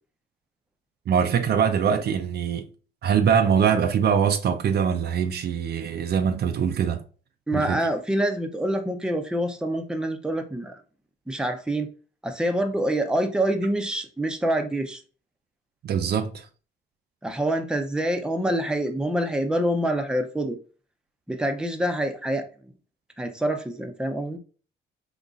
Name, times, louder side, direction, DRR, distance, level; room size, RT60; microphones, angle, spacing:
voice 1, 1.1-2.7 3.0-7.0 7.5-7.9 15.8-16.5, right 7 dB, 55° right, 0.5 m, -23 dB
voice 2, 7.5-10.8 11.3-11.9 12.2-15.0 17.2-20.6 21.3-22.5 23.2-24.4, right 1 dB, 5° right, 0.6 m, -26 dB
3.9 x 2.9 x 2.4 m
cardioid pair, 90°, 20 cm